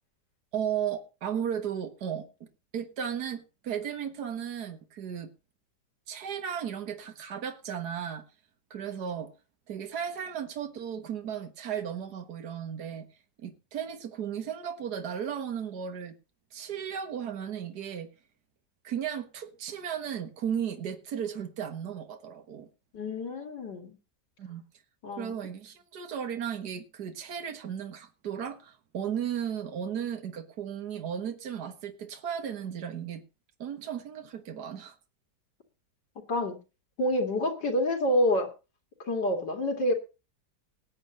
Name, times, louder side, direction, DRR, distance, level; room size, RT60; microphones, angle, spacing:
voice 1, 0.5-5.3 6.1-8.2 8.7-9.3 9.7-13.1 13.4-16.2 16.5-18.1 18.8-22.7 24.4-24.6 25.2-33.2 33.6-35.0, right 8 dB, 70° right, 1.9 m, -35 dB
voice 2, 22.9-24.0 25.0-25.4 36.3-36.6 37.0-38.5 39.0-39.9, left 1 dB, 80° left, 2.9 m, -28 dB
19.5 x 8.2 x 3.9 m
omnidirectional pair, 1.8 m